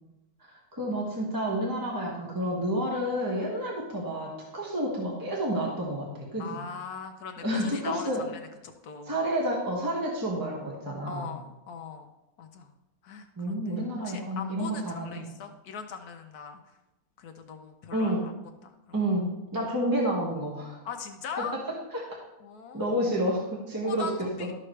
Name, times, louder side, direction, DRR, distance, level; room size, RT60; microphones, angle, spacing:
voice 1, 0.4-6.6 7.4-8.2 9.1-11.3 13.4-15.3 17.9-18.2 18.9-20.8 21.4-21.5 21.9-22.2 22.7-24.1, right 1 dB, 15° right, -3 dB, 1.5 m, -30 dB
voice 2, 6.4-9.2 11.0-12.1 12.4-12.7 13.0-16.6 17.2-18.3 18.6-18.7 20.8-21.5 22.4-23.0 23.8-24.5, left 6 dB, 80° left, 5 dB, 1.3 m, -40 dB
13.0 x 6.4 x 3.3 m, 0.96 s
omnidirectional pair, 1.6 m